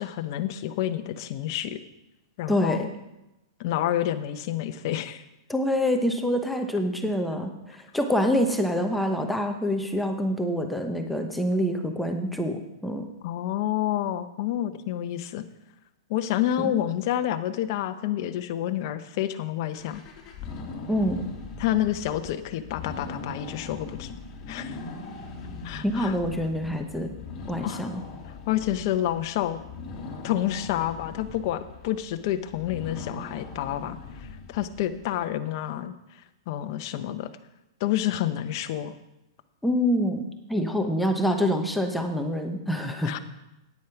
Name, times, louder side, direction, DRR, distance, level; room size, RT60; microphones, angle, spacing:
voice 1, 0.0-1.8 2.4-2.9 3.6-5.2 13.2-15.4 16.1-20.0 21.6-24.1 24.5-24.8 25.6-26.1 27.6-27.8 28.5-29.6 30.2-35.9 36.5-37.3 37.8-39.0 43.0-43.2, left 12 dB, 45° left, 9 dB, 0.8 m, -29 dB
voice 2, 2.5-2.9 5.5-13.1 16.6-16.7 20.9-21.2 25.8-27.1 27.5-28.0 39.6-43.2, equal, ahead, 3 dB, 0.9 m, -26 dB
sound 1, 19.7-35.2, left 4 dB, 25° left, 3.2 m, -40 dB
9.5 x 8.5 x 5.8 m, 0.95 s
hypercardioid pair, 145°, 3 cm